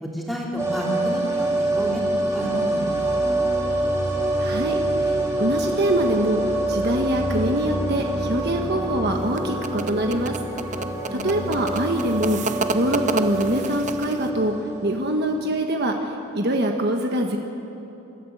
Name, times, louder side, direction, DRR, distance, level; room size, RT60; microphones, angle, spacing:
voice 1, 0.0-3.4 11.1-11.5, equal, ahead, -3 dB, 3.3 m, -31 dB
sound 1, 0.6-15.5 15.7-15.8, right 1 dB, 15° right, 2.7 m, -26 dB
voice 2, 4.4-4.8 5.0-5.1 5.4-6.4 6.7-10.3 11.2-12.4 12.7-14.5 14.8-15.9 16.3-17.4, right 1 dB, 50° right, 3 dB, 1.4 m, -24 dB
sound 2, 9.1-14.3, right 4 dB, 35° right, 0.7 m, -31 dB
28.0 x 13.5 x 8.1 m, 2.9 s
head